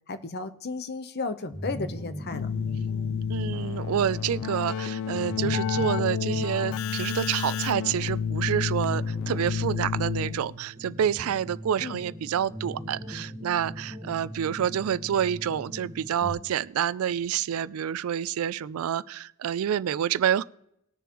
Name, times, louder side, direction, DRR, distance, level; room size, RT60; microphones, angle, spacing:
voice 1, 0.1-2.5 11.8-12.0, left 3 dB, 50° left, 0.8 m, -34 dB
sound 1, 1.5-16.3, equal, 5° left, 1.5 m, -41 dB
Keyboard (musical), 2.3-10.7, left 7 dB, 70° left, 0.3 m, -30 dB
voice 2, 3.3-20.4, right 9 dB, 80° right, 0.4 m, -28 dB
20.0 x 6.8 x 3.0 m
head